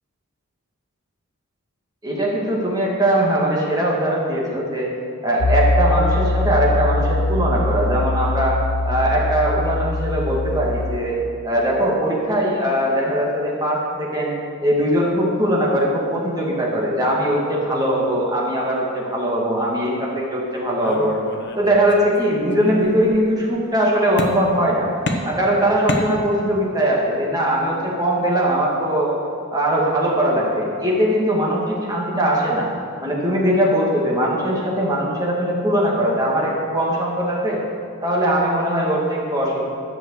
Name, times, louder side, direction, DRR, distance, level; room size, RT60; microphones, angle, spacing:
voice 1, 2.0-4.9 5.2-8.6 8.9-11.2 11.4-14.4 14.6-21.1 21.6-24.9 25.3-29.2 29.5-32.7 33.0-37.6 38.0-39.7, right 1 dB, 15° right, -4 dB, 1.9 m, -20 dB
Piano, 5.4-11.0, left 2 dB, 85° left, 0.6 m, -22 dB
sound 1, 20.8-22.2 22.5-23.2 24.2-24.7 25.1-26.7, left 1 dB, 50° left, 1.0 m, -29 dB
11.0 x 6.4 x 8.0 m, 2.5 s
head